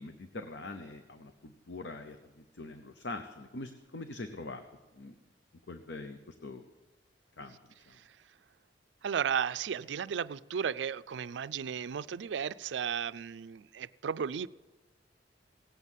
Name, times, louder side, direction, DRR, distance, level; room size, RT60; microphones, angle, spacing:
voice 1, 0.0-4.6 4.9-5.1 5.7-6.6 7.4-7.6 7.9-8.0, left 2 dB, 70° left, 0.8 m, -43 dB
voice 2, 9.0-14.5, right 7 dB, 80° right, 0.4 m, -34 dB
17.5 x 8.1 x 7.3 m
head